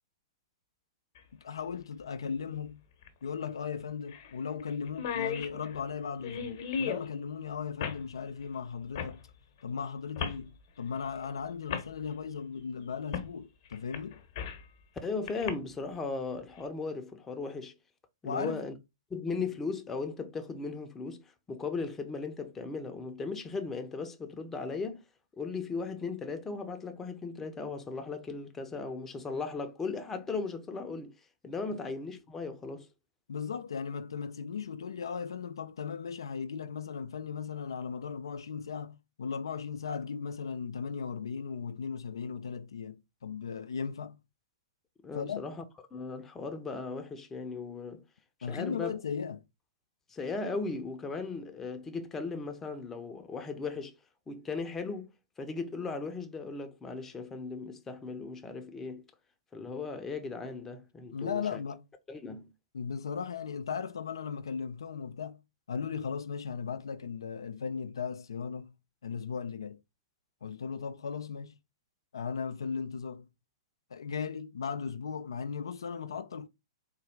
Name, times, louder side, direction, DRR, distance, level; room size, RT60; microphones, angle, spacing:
sound 1, 1.2-1.3 3.0-3.1 3.5-3.6 4.1-4.3 4.6-4.7 4.9-7.1 7.8-8.0 8.9-9.2 10.2-10.4 11.2-11.3 11.7-11.9 13.1-13.3 13.7-14.7 15.3-15.5, left 7 dB, 50° left, 0.8 m, -35 dB
voice 1, 1.3-2.8 3.2-9.2 9.6-14.2 18.2-18.6 33.3-44.2 45.1-45.5 48.4-49.4 61.1-61.9 62.7-65.4 65.7-68.7 69.0-69.8 70.4-71.6 72.1-73.3 73.9-76.5, left 6 dB, 75° left, 0.3 m, -37 dB
voice 2, 15.0-17.7 18.2-18.7 19.1-25.0 25.3-31.1 31.4-32.9 45.0-45.6 45.9-48.0 48.5-48.9 50.1-54.0 54.3-55.1 55.4-59.0 59.5-61.6 62.1-62.5, left 4 dB, 15° left, 0.6 m, -37 dB
3.8 x 2.3 x 3.4 m
figure-of-eight pair, 110°, 3 cm